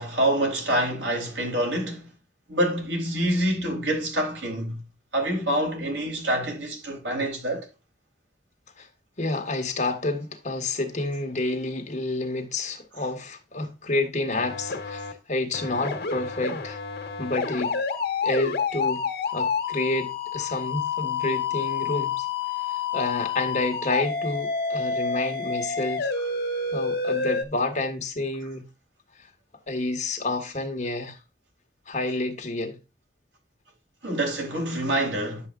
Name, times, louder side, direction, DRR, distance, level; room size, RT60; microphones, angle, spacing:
voice 1, 0.0-2.1 2.5-4.8 5.1-7.7 34.0-35.5, right 1 dB, 85° right, 3.5 m, -26 dB
voice 2, 9.2-16.8 17.2-17.8 18.2-22.3 22.7-26.1 26.7-28.7 29.7-31.2 31.9-32.8, left 2 dB, 45° left, 1.5 m, -29 dB
sound 1, 14.4-15.1 15.5-27.4, left 5 dB, 60° left, 1.6 m, -29 dB
10.0 x 7.1 x 2.5 m
head